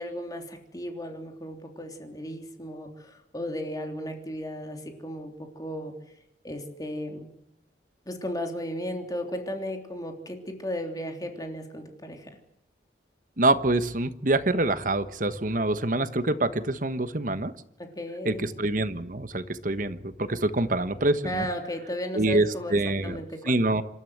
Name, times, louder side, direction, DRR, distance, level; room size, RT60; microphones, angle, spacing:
voice 1, 0.0-5.9 6.4-7.3 8.0-12.3 17.8-18.5 21.2-22.7 23.0-23.5, equal, 20° left, 4 dB, 3.3 m, -35 dB
voice 2, 13.4-17.5 18.2-21.5 22.1-23.2 23.4-23.8, right 2 dB, 45° right, 11 dB, 1.2 m, -25 dB
27.0 x 13.0 x 8.0 m, 0.79 s
head